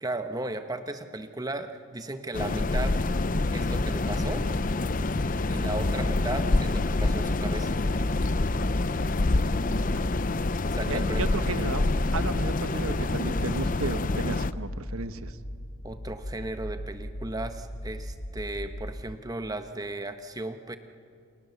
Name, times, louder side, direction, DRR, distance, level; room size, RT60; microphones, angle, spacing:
voice 1, 0.0-3.0 3.5-4.5 5.5-7.8 10.7-11.3 15.8-20.8, right 2 dB, 15° right, 8 dB, 1.1 m, -35 dB
sound 1, 2.3-14.5, left 2 dB, 40° left, 0.6 m, -27 dB
sound 2, 3.0-19.1, equal, 70° left, 1.6 m, -37 dB
voice 2, 10.8-11.8 12.1-15.4, right 3 dB, 80° right, 11 dB, 1.1 m, -34 dB
29.5 x 28.5 x 7.0 m, 2.4 s
head